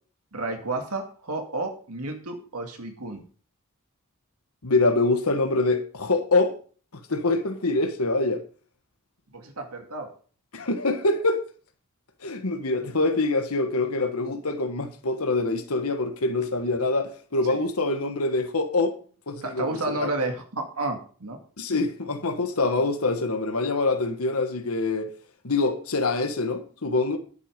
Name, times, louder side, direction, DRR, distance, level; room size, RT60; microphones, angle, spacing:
voice 1, 0.3-3.2 9.3-10.1 17.5-17.7 19.4-21.4, right 2 dB, 90° right, 2.1 m, -31 dB
voice 2, 4.6-6.5 7.1-8.4 10.5-11.4 12.2-18.9 19.3-20.1 21.6-25.1 25.4-27.2, left 3 dB, 80° left, 1.3 m, -25 dB
11.0 x 8.4 x 5.1 m
head